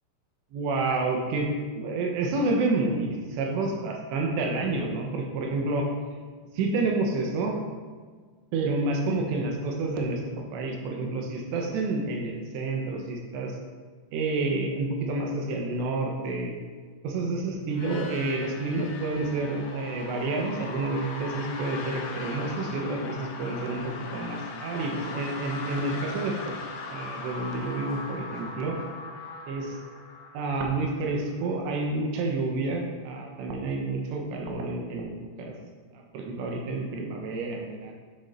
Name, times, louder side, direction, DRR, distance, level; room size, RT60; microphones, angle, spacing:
voice 1, 0.5-1.5 1.8-5.9 6.5-7.6 8.5-13.6 14.1-16.5 17.0-26.6 26.8-28.8 29.5-29.8 30.3-35.1 35.4-35.5 35.9-37.9, right 3 dB, 80° right, 1 dB, 3.2 m, -29 dB
sound 1, 17.7-31.4, left 3 dB, 75° left, 3.0 m, -39 dB
12.0 x 7.5 x 2.7 m, 1.5 s
omnidirectional pair, 5.2 m